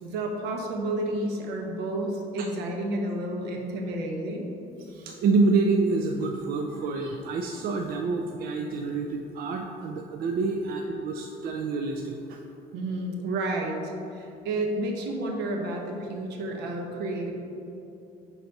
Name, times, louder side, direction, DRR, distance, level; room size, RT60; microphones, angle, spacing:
voice 1, 0.0-4.5 12.7-17.3, right 1 dB, 80° right, 1 dB, 1.0 m, -31 dB
voice 2, 4.9-12.4, right 3 dB, 60° right, 3 dB, 0.4 m, -27 dB
5.9 x 4.1 x 5.2 m, 2.8 s
cardioid pair, 110°, 17 cm